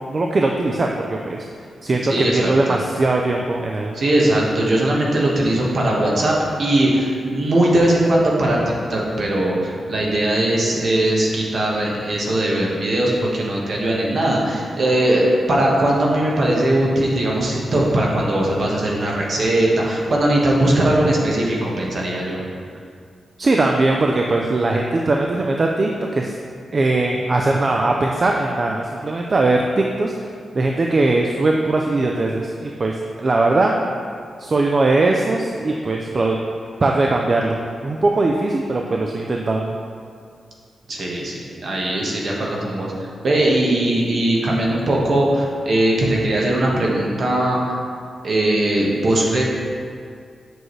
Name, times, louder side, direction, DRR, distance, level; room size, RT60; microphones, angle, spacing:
voice 1, 0.1-1.5 1.8-3.9 23.4-26.3 26.7-30.3 30.5-33.8 34.4-36.4 36.8-39.8, right 2 dB, 35° right, 1 dB, 0.4 m, -20 dB
voice 2, 2.1-2.8 3.9-22.4 40.9-47.8 48.2-49.4, right 1 dB, 55° right, -3 dB, 1.3 m, -19 dB
7.9 x 6.1 x 3.2 m, 2.2 s
wide cardioid pair, 125°, 0 cm